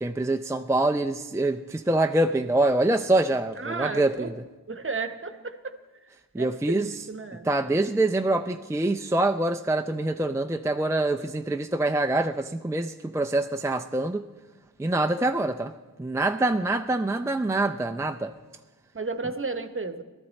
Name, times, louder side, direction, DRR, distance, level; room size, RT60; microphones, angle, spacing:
voice 1, 0.0-4.3 6.3-6.9 7.4-14.3 14.8-15.7 16.0-18.3, right 2 dB, 10° right, 5 dB, 0.4 m, -25 dB
voice 2, 3.6-4.3 4.7-5.7 6.4-7.5 16.5-16.7 18.9-20.0, right 4 dB, 35° right, 9 dB, 0.9 m, -33 dB
19.0 x 13.0 x 4.1 m, 1.2 s
wide cardioid pair, 60°, 35 cm